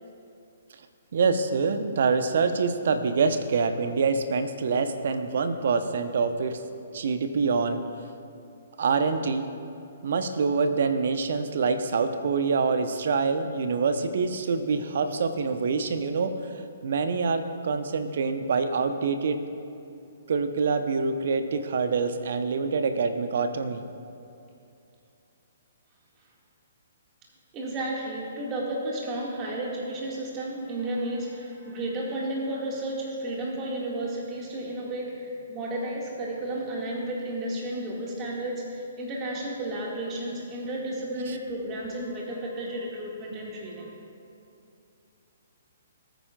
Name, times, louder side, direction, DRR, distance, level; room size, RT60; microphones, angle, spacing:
voice 1, 1.1-6.6 6.9-7.8 8.8-9.5 10.0-19.4 20.3-23.8, right 4 dB, 60° right, 8 dB, 0.8 m, -26 dB
voice 2, 27.5-43.9, right 1 dB, 25° right, -3 dB, 2.0 m, -32 dB
20.0 x 9.1 x 2.4 m, 2.6 s
figure-of-eight pair, 125°, 0 cm